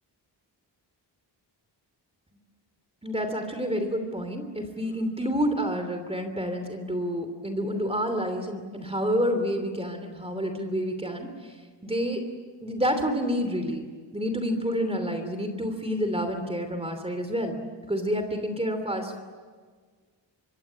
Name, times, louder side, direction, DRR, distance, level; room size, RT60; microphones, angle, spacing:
voice 1, 3.0-11.5 11.8-12.2 12.6-13.9 14.1-17.6 17.9-19.2, equal, 15° right, 7 dB, 3.0 m, -29 dB
25.5 x 24.5 x 8.7 m, 1.5 s
wide cardioid pair, 155°, 43 cm